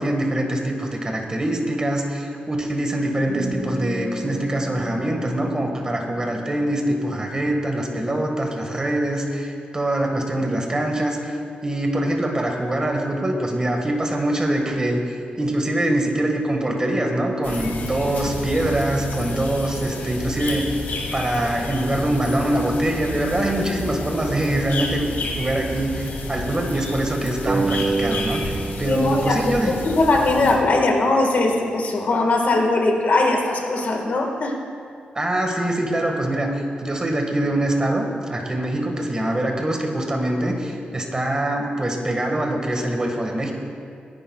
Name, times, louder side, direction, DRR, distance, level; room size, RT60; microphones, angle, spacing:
voice 1, 0.0-11.4 11.6-20.7 21.1-25.1 25.4-29.7 35.1-43.5, right 1 dB, 25° right, 2 dB, 1.7 m, -24 dB
sound 1, 3.2-8.1, right 1 dB, 90° right, 2.9 m, -34 dB
sound 2, 17.4-30.6, left 2 dB, 85° left, 2.0 m, -31 dB
sound 3, 27.5-30.7, right 4 dB, 40° right, 0.4 m, -28 dB
voice 2, 28.9-34.6, left 2 dB, 60° left, 2 dB, 1.7 m, -20 dB
24.0 x 10.5 x 2.4 m, 2.4 s
wide cardioid pair, 110°, 3 cm